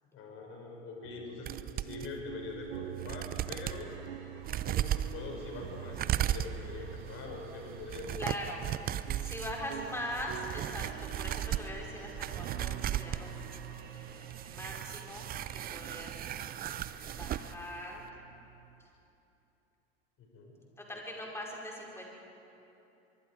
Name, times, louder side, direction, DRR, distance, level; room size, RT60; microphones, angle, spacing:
voice 1, 0.1-1.5 1.8-3.9 4.6-8.2 20.2-20.5, left 4 dB, 40° left, 0 dB, 6.1 m, -44 dB
sound 1, 1.0-18.9, right 15 dB, 65° right, 0.6 m, -48 dB
sound 2, 1.5-2.1 2.6-2.7 3.0-3.8 4.4-17.5 17.8-17.9, right 11 dB, 25° right, 0.6 m, -37 dB
sound 3, 3.6-17.5, right 4 dB, 50° right, 5.1 m, -58 dB
voice 2, 8.1-8.7 9.2-13.3 14.4-16.2 17.2-18.1 18.8-18.9 20.8-22.1, left 1 dB, 10° left, -2 dB, 5.2 m, -41 dB
24.0 x 24.0 x 4.9 m, 2.9 s
figure-of-eight pair, 85°, 33 cm